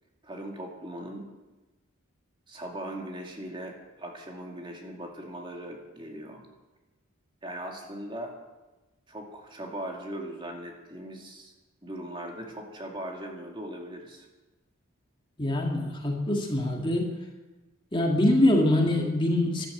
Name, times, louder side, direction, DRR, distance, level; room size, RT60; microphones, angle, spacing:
voice 1, 0.2-1.3 2.5-6.4 7.4-8.4 9.1-11.5 11.8-14.3, right 1 dB, 25° right, 1 dB, 2.3 m, -39 dB
voice 2, 15.4-17.1 17.9-19.7, left 1 dB, 25° left, 1 dB, 2.0 m, -24 dB
13.0 x 12.5 x 7.9 m, 1.1 s
head